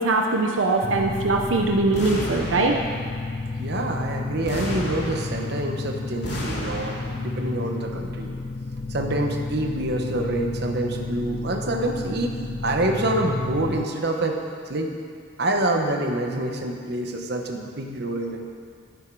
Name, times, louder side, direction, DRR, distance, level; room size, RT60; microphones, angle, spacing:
voice 1, 0.0-2.8, right 3 dB, 85° right, 2 dB, 0.8 m, -21 dB
sound 1, 0.8-13.9, left 3 dB, 50° left, 0.4 m, -32 dB
sound 2, 1.9-3.2 4.4-5.7 6.2-7.4, left 1 dB, 65° left, 2.5 m, -32 dB
voice 2, 3.6-8.4 8.9-14.4 14.7-14.9 15.4-18.5, right 1 dB, 60° right, 3 dB, 1.1 m, -26 dB
11.0 x 9.9 x 4.7 m, 2.1 s
head